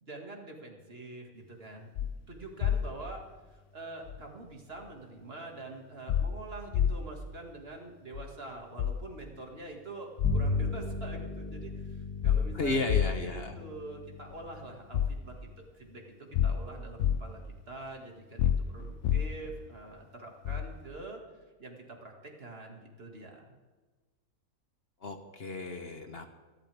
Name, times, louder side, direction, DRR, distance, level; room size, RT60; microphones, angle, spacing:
voice 1, 0.0-3.2 3.5-12.8 13.2-15.5 15.7-21.3 21.6-23.6, right 2 dB, 45° right, 1 dB, 2.3 m, -45 dB
sound 1, 2.0-2.1 2.6-2.8 4.1-4.2 6.1-6.3 6.7-7.0 8.1-8.2 8.8-9.0 10.2-10.4 10.9-11.0 12.2-13.4 14.3-14.4 14.9-15.2 16.3-17.2 18.4-19.5 20.4-20.7, left 9 dB, 65° left, 0.9 m, -27 dB
Bowed string instrument, 10.2-15.9, left 2 dB, 15° left, 2.0 m, -37 dB
voice 2, 12.5-13.6 25.0-26.3, left 2 dB, 45° left, 5 dB, 1.3 m, -33 dB
25.0 x 12.5 x 3.5 m, 1.3 s
omnidirectional pair, 1.5 m